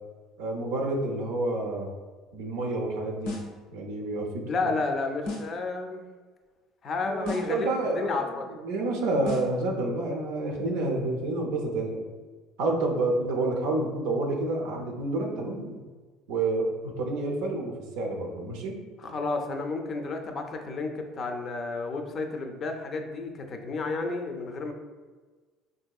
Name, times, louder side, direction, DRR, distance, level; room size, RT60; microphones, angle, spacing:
voice 1, 0.4-1.9 2.3-3.3 3.7-4.7 7.1-12.0 12.6-15.8 16.3-18.8, right 2 dB, 90° right, 0 dB, 0.5 m, -29 dB
sound 1, 3.2-3.6 5.3-5.6 7.2-7.6 9.3-9.6, left 2 dB, 85° left, 0.9 m, -35 dB
voice 2, 4.5-6.1 6.8-7.7 8.0-8.6 19.0-24.7, left 3 dB, 40° left, 4 dB, 0.4 m, -31 dB
3.7 x 2.6 x 2.3 m, 1.4 s
supercardioid pair, 105°, 0 cm